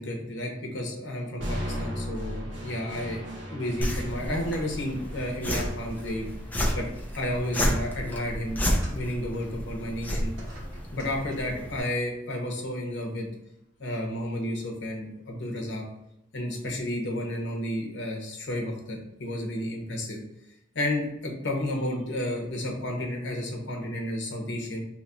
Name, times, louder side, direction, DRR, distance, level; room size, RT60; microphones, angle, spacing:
voice 1, 0.0-3.2 3.5-6.3 6.7-6.9 7.1-8.6 8.9-10.3 10.9-13.3 13.8-15.8 16.3-20.2 20.7-24.8, left 1 dB, 65° left, 0 dB, 0.8 m, -32 dB
sound 1, 1.4-9.4, equal, 70° right, 0.9 m, -39 dB
sound 2, 3.8-11.8, equal, 10° left, 0.5 m, -31 dB
sound 3, 8.8-11.7 12.7-12.9 13.7-13.8, right 1 dB, 90° right, 1.2 m, -50 dB
3.0 x 2.4 x 4.1 m, 0.85 s
head